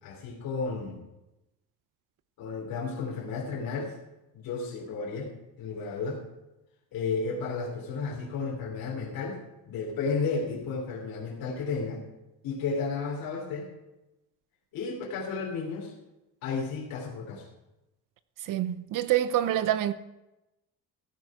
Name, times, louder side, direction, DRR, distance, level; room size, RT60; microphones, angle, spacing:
voice 1, 0.0-1.0 2.4-3.9 4.3-6.2 6.9-9.4 9.6-12.0 12.4-13.7 14.7-15.9 16.4-17.5, left 4 dB, 70° left, 3.3 m, -33 dB
voice 2, 18.4-19.9, right 12 dB, 60° right, 0.8 m, -26 dB
15.0 x 9.7 x 5.0 m
cardioid pair, 150°, 36 cm